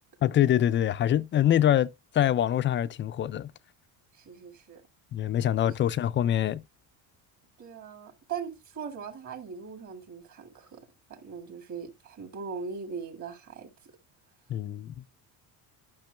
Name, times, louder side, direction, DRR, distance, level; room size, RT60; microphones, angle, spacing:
voice 1, 0.2-1.9 2.1-3.5 5.1-6.6 14.5-15.0, left 11 dB, 30° left, 0.4 m, -24 dB
voice 2, 4.1-4.8 7.6-10.8 11.1-13.7, right 6 dB, 45° right, 2.1 m, -40 dB
12.0 x 6.0 x 2.2 m
cardioid pair, 135°, 42 cm